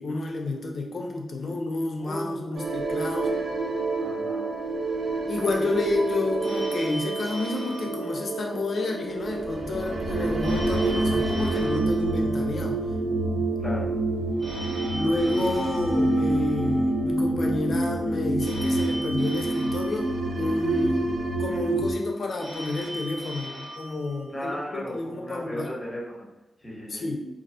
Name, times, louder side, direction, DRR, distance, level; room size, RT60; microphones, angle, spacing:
voice 1, 0.0-3.3 5.3-12.8 14.9-20.1 20.4-21.1 21.4-25.7 26.9-27.3, left 2 dB, 60° left, 1 dB, 0.4 m, -29 dB
voice 2, 2.0-2.8 3.1-3.4 4.0-4.5 13.6-13.8 24.3-26.3 26.6-27.0, equal, 20° left, -5 dB, 0.9 m, -36 dB
sound 1, 2.5-21.9, right 2 dB, 70° right, 0.4 m, -27 dB
Telephone, 6.4-8.9 10.4-12.9 14.4-16.9 18.4-20.9 22.4-24.9, equal, 35° right, 0.9 m, -40 dB
2.4 x 2.0 x 2.6 m, 0.96 s
wide cardioid pair, 110°, 0 cm